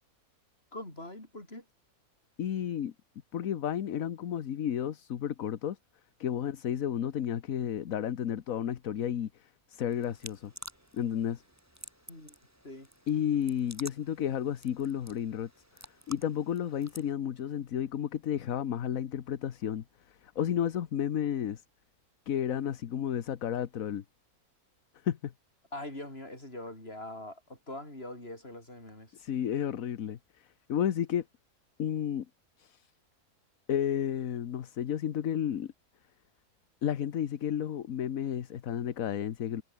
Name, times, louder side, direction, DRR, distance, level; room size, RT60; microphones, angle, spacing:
voice 1, 0.7-1.7 12.1-12.4 12.6-12.9 25.7-29.2, left 1 dB, 40° left, 7.2 m, -43 dB
voice 2, 2.4-2.9 3.3-5.8 6.2-10.5 10.9-11.4 13.1-15.5 16.1-21.6 22.3-24.0 25.0-25.3 29.1-31.2 31.8-32.3 32.6-32.9 33.7-35.7 36.8-39.6, left 9 dB, 65° left, 1.4 m, -32 dB
sound 1, 9.9-17.1, equal, 10° right, 6.3 m, -51 dB
omnidirectional pair, 1.6 m